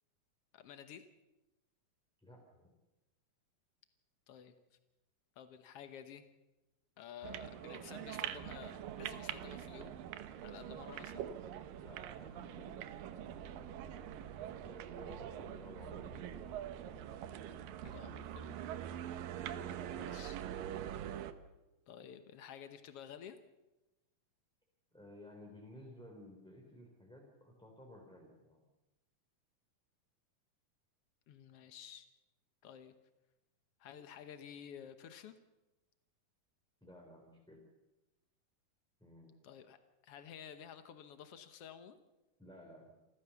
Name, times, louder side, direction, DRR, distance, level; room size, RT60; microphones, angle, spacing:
voice 1, 0.5-1.0 4.3-4.5 5.4-6.2 7.0-9.9 10.4-11.2 17.8-18.6 19.9-20.4 21.9-23.4 31.3-32.1 32.6-32.9 33.8-35.3 39.4-39.8 40.0-42.0, left 8 dB, 85° left, 9 dB, 1.3 m, -52 dB
voice 2, 2.2-2.7 11.8-12.8 13.1-17.0 19.9-20.2 24.9-28.6 36.8-37.6 39.0-39.4 42.4-43.0, left 1 dB, ahead, 0 dB, 2.6 m, -56 dB
sound 1, 7.2-21.3, right 10 dB, 75° right, 2.6 m, -44 dB
28.0 x 14.5 x 7.0 m, 1.0 s
omnidirectional pair, 4.3 m